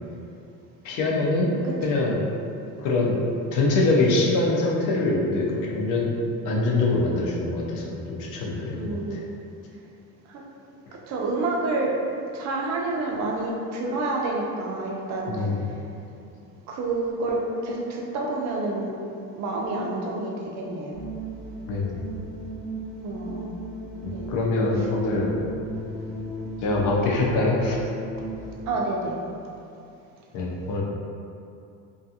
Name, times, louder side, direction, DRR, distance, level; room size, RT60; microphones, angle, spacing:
voice 1, 0.8-1.5 1.8-2.2 2.8-3.2 3.5-6.1 6.4-9.2 15.3-15.7 21.7-22.0 24.0-25.4 26.6-27.8 30.3-30.8, left 2 dB, 65° left, -3 dB, 0.5 m, -24 dB
voice 2, 8.7-9.3 10.3-10.4 11.1-12.0 12.3-15.6 16.7-18.9 19.3-21.0 23.0-23.5 24.1-24.3 28.7-29.2, right 2 dB, 55° right, -1 dB, 0.5 m, -28 dB
sound 1, 20.9-28.6, right 1 dB, 5° left, 0.3 m, -36 dB
2.4 x 2.3 x 2.7 m, 2.6 s
cardioid pair, 135°, 34 cm